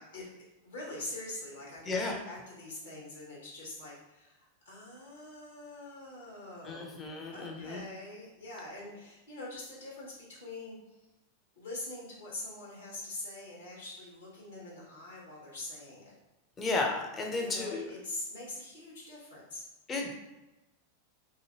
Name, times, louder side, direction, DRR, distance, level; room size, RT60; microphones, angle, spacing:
voice 1, 0.6-7.0 7.3-11.0 11.6-16.1 17.4-19.6, left 2 dB, 70° left, -5 dB, 1.2 m, -44 dB
voice 2, 1.8-2.2 6.6-7.8 16.6-17.9 19.9-20.1, left 3 dB, 20° left, 0 dB, 0.5 m, -33 dB
2.7 x 2.6 x 2.8 m, 1.0 s
figure-of-eight pair, 90°, 0 cm